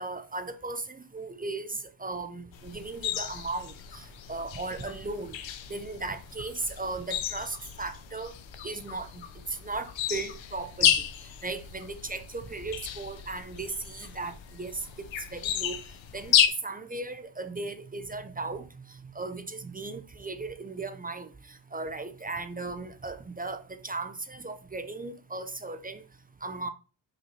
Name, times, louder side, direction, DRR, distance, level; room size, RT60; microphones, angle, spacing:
voice 1, 0.0-5.4 5.7-8.3 8.6-9.1 9.6-10.9 11.4-14.3 14.6-14.8 15.3-15.8 16.1-16.3 16.6-18.7 19.2-21.3 21.7-26.0 26.4-26.7, right 3 dB, 20° right, 0.5 m, -36 dB
sound 1, 2.5-16.5, left 10 dB, 75° left, 0.8 m, -32 dB
5.9 x 5.1 x 3.2 m
cardioid pair, 85°, 46 cm